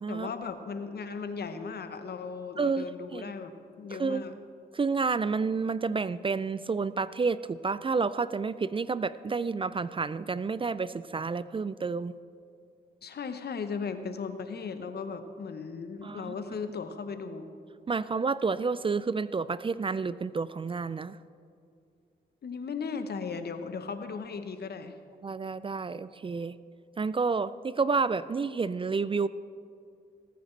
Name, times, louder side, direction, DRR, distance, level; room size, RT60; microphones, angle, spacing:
voice 1, 0.1-3.5 3.8-4.4 13.0-17.5 22.4-25.0, left 5 dB, 60° left, 9 dB, 0.9 m, -37 dB
voice 2, 4.7-12.1 16.0-16.3 17.9-21.2 25.2-26.5 27.0-29.3, right 4 dB, 30° right, 16 dB, 0.4 m, -30 dB
18.5 x 9.3 x 3.3 m, 2.4 s
supercardioid pair, 50°, 18 cm